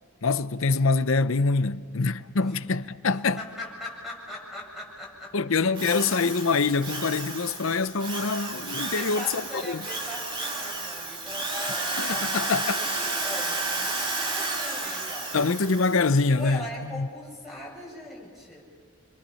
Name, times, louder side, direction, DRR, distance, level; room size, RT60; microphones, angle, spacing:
voice 1, 0.2-3.4 5.3-9.8 11.7-12.8 15.3-17.1, left 4 dB, 65° left, 0.7 m, -25 dB
voice 2, 3.1-5.7 8.9-15.4 16.3-18.7, left 1 dB, ahead, 7.3 m, -41 dB
Drill, 5.8-16.2, right 2 dB, 25° right, 2.1 m, -32 dB
29.0 x 22.5 x 5.7 m
head